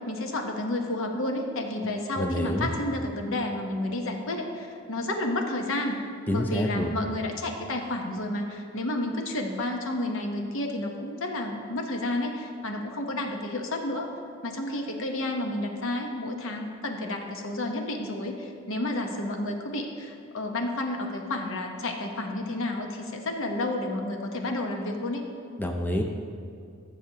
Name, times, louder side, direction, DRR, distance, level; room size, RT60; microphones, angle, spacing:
voice 1, 0.0-6.0 6.3-14.1 14.4-25.2, left 1 dB, 65° left, 3 dB, 0.9 m, -31 dB
voice 2, 2.2-2.7 6.3-6.9 25.6-26.0, left 1 dB, 10° left, 2 dB, 0.5 m, -27 dB
14.5 x 6.7 x 2.8 m, 2.4 s
head